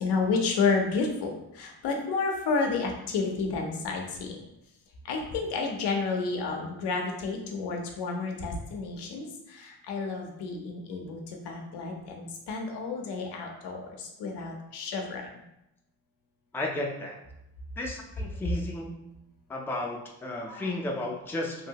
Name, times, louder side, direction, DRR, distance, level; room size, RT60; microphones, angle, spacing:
voice 1, 0.0-4.4 5.0-15.2 20.5-20.7, left 4 dB, 85° left, 1 dB, 0.7 m, -31 dB
voice 2, 16.5-17.2 17.8-19.0 19.5-21.7, left 2 dB, 5° left, -1 dB, 0.4 m, -33 dB
2.9 x 2.6 x 2.8 m, 0.86 s
cardioid pair, 95°, 39 cm